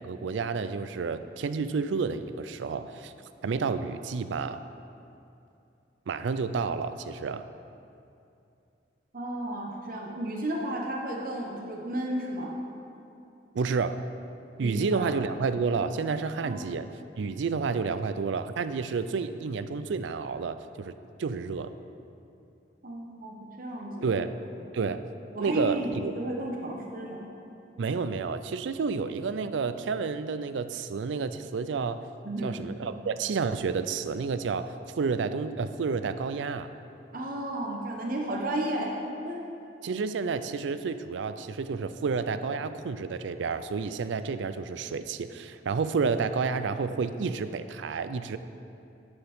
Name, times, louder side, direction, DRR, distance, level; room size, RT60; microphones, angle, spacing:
voice 1, 0.0-3.1 3.4-4.6 6.1-7.5 13.5-14.0 14.6-16.9 17.2-20.9 21.2-21.7 24.0-24.3 24.7-25.0 25.4-26.1 27.8-32.1 32.4-36.7 39.8-48.4, right 5 dB, 80° right, 12 dB, 0.4 m, -30 dB
voice 2, 9.1-12.5 14.6-15.1 16.4-16.8 22.8-24.2 24.6-24.7 25.3-27.2 32.2-32.6 37.1-38.9 39.2-39.5, right 1 dB, 50° right, -1 dB, 1.0 m, -33 dB
11.5 x 7.0 x 3.6 m, 2.6 s
head